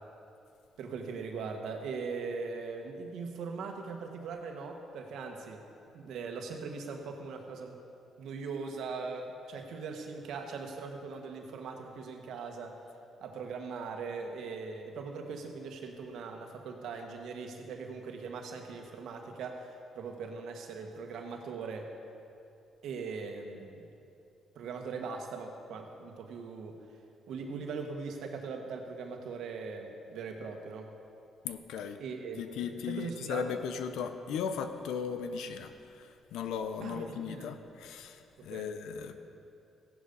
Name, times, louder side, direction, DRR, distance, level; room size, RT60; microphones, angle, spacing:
voice 1, 0.8-5.6 5.9-7.8 8.2-12.8 13.2-21.9 22.8-23.9 24.5-26.8 27.3-30.9 32.0-33.4 36.8-37.5 38.4-38.7, right 4 dB, 75° right, 3 dB, 1.6 m, -40 dB
voice 2, 31.4-32.0 32.4-39.2, left 7 dB, 85° left, 9 dB, 0.9 m, -37 dB
15.0 x 11.0 x 5.5 m, 2.7 s
cardioid pair, 90°, 0 cm